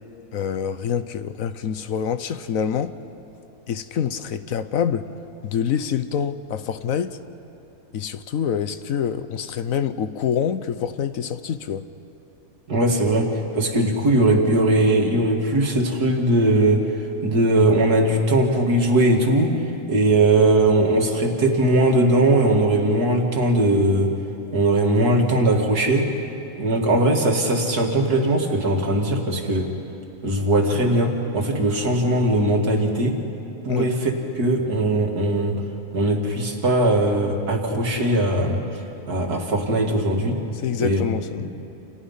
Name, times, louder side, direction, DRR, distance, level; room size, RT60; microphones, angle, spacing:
voice 1, 0.3-3.0 3.7-5.1 5.4-7.2 7.9-11.9 33.7-33.9 40.6-41.5, left 8 dB, 65° left, 1.2 m, -26 dB
voice 2, 12.7-16.8 17.2-19.6 19.9-24.2 24.5-26.1 26.6-29.7 30.2-33.2 33.6-35.6 35.9-38.6 39.1-40.4 40.8-41.2, right 1 dB, 85° right, 2.9 m, -20 dB
29.5 x 28.5 x 5.6 m
omnidirectional pair, 1.6 m